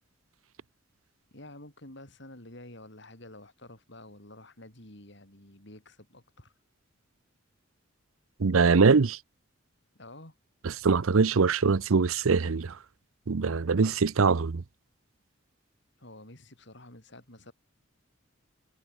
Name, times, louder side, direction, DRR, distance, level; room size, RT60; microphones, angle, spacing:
voice 1, 1.3-6.5 9.9-10.4 16.0-17.5, left 1 dB, 55° left, 4.4 m, -49 dB
voice 2, 8.4-9.2 10.6-12.7 13.3-14.6, right 4 dB, 75° right, 0.6 m, -23 dB
head